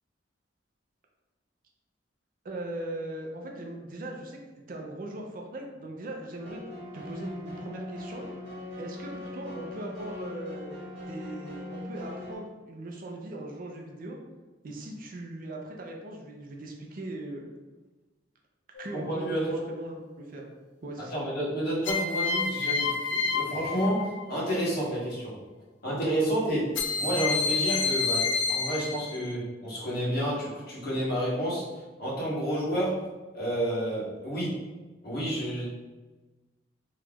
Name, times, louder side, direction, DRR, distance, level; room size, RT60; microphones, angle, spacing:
voice 1, 2.4-4.4 4.7-8.3 8.8-14.2 14.6-17.5 18.8-20.4 20.8-21.2, right 1 dB, 50° right, 0 dB, 0.5 m, -39 dB
sound 1, 6.4-12.4, left 2 dB, 75° right, 1.2 m, -40 dB
sound 2, 18.8-19.3 21.9-24.5 26.8-29.3, left 4 dB, 75° left, 0.4 m, -29 dB
voice 2, 18.9-19.6 21.0-25.3 25.8-26.7 27.0-31.6 32.0-33.0 33.3-34.6 35.0-35.7, right 1 dB, 60° left, -8 dB, 1.3 m, -30 dB
3.1 x 2.4 x 3.3 m, 1.2 s
head